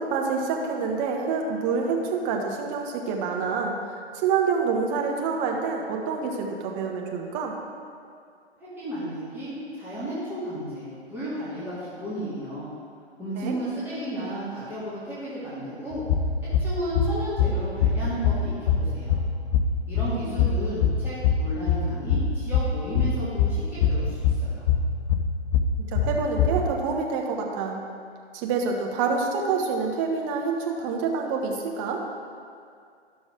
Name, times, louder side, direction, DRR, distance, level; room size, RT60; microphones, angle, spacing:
voice 1, 0.0-7.6 13.4-13.6 20.2-20.7 25.8-27.8 28.3-32.0, right 5 dB, 30° right, 1 dB, 1.1 m, -27 dB
voice 2, 8.6-12.7 13.2-16.0 16.6-19.2 19.9-24.7, right 1 dB, 5° right, -12 dB, 2.0 m, -33 dB
sound 1, 15.9-26.7, left 5 dB, 45° left, 0.7 m, -24 dB
11.5 x 6.2 x 3.7 m, 2.3 s
figure-of-eight pair, 120°, 33 cm